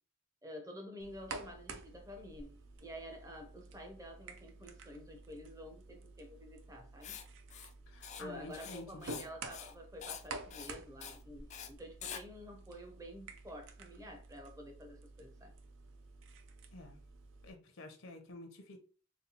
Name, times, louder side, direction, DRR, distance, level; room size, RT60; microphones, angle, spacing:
voice 1, 0.4-7.2 8.2-15.5, equal, 15° right, 0.7 m, -50 dB
sound 1, 1.0-17.5, right 3 dB, 60° right, 0.4 m, -51 dB
Writing, 7.0-7.2 7.5-7.7 8.0-8.2 8.5-9.3 9.5-9.7 10.0-10.2 10.5-10.7 11.0-11.2 11.5-11.7 12.0-12.2, left 7 dB, 35° left, 0.3 m, -46 dB
voice 2, 7.9-9.2 16.7-17.0 17.4-18.8, left 2 dB, 65° left, 0.6 m, -50 dB
4.0 x 2.3 x 2.8 m
head